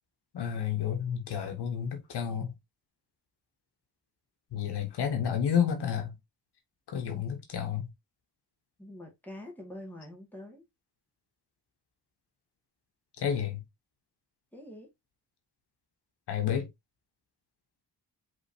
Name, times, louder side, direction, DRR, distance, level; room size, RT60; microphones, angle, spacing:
voice 1, 0.3-2.5 4.5-6.1 6.9-7.9 13.2-13.6 16.3-16.7, left 8 dB, 90° left, 1.2 m, -30 dB
voice 2, 8.8-10.6 14.5-14.9, left 1 dB, 5° left, 2.1 m, -45 dB
5.2 x 3.6 x 2.8 m
cardioid pair, 65°, 39 cm